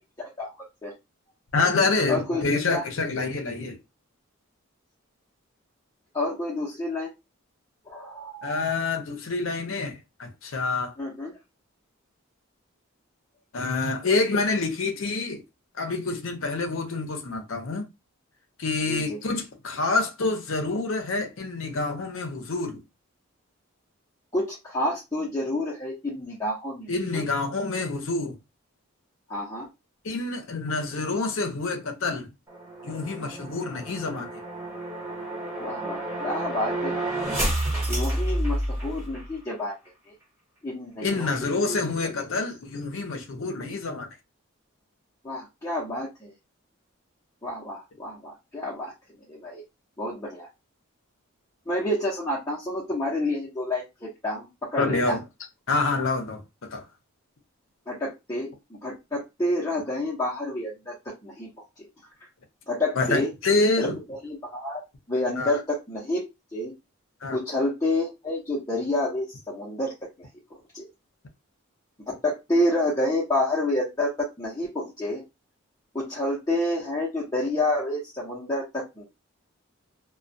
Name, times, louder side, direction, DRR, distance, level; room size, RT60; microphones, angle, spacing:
voice 1, 0.4-0.9 2.1-2.8 6.1-7.1 7.9-8.7 11.0-11.3 18.9-19.2 24.3-27.2 29.3-29.7 35.6-37.4 37.9-39.7 40.1-40.2 40.6-41.8 45.2-46.3 47.4-48.9 49.3-49.6 50.0-50.5 51.7-55.2 57.9-61.5 61.8-61.9 62.7-63.3 63.8-63.9 64.2-64.8 65.1-66.2 66.5-66.7 67.3-69.9 70.2-70.9 72.2-75.2 75.9-79.0, left 1 dB, 15° left, 0.6 m, -29 dB
voice 2, 1.5-3.8 8.4-10.9 13.5-15.4 15.8-17.9 18.6-22.8 26.9-28.4 30.0-32.3 32.8-34.3 41.0-44.1 54.8-55.2 55.7-56.8 63.0-64.0 65.4-65.6 67.2-67.4, left 3 dB, 65° left, 0.6 m, -27 dB
sound 1, 32.5-39.3, right 1 dB, 10° right, 0.8 m, -30 dB
2.2 x 2.2 x 2.6 m
head